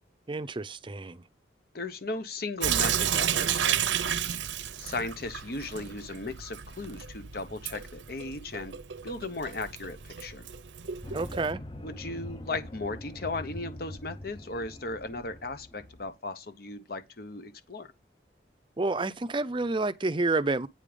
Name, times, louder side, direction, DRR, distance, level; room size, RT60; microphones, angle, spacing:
voice 1, 0.3-1.2 11.1-11.6 18.8-20.7, right 3 dB, 25° right, 0.5 m, -29 dB
voice 2, 1.7-4.2 4.8-8.7 9.0-10.5 11.8-17.9, left 2 dB, 55° left, 1.0 m, -36 dB
Sink (filling or washing) / Drip, 2.6-11.5, right 9 dB, 85° right, 0.7 m, -32 dB
sound 1, 11.0-16.1, left 1 dB, 25° left, 0.8 m, -43 dB
9.2 x 5.3 x 5.1 m
head